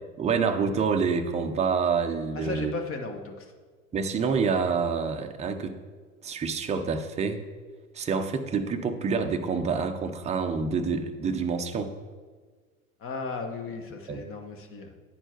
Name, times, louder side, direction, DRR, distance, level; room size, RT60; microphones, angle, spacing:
voice 1, 0.2-2.7 3.9-5.8 6.2-7.4 7.9-11.9 14.1-14.2, right 5 dB, 15° right, 6 dB, 0.6 m, -27 dB
voice 2, 2.3-3.5 13.0-14.9, left 4 dB, 30° left, 4 dB, 1.2 m, -35 dB
10.5 x 4.4 x 4.5 m, 1.5 s
hypercardioid pair, 85°, 43 cm